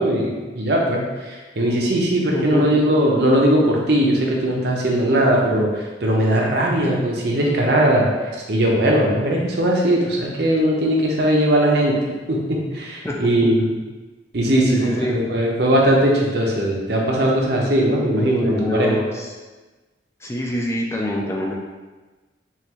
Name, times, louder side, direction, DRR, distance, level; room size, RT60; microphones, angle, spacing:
voice 1, 0.0-8.1 8.5-13.7 14.3-19.0, right 1 dB, 60° right, -2 dB, 0.8 m, -19 dB
voice 2, 2.3-2.8 13.0-13.2 14.7-15.2 18.0-19.3 20.2-21.5, left 1 dB, 15° left, -2 dB, 0.4 m, -25 dB
5.6 x 2.6 x 3.1 m, 1.2 s
head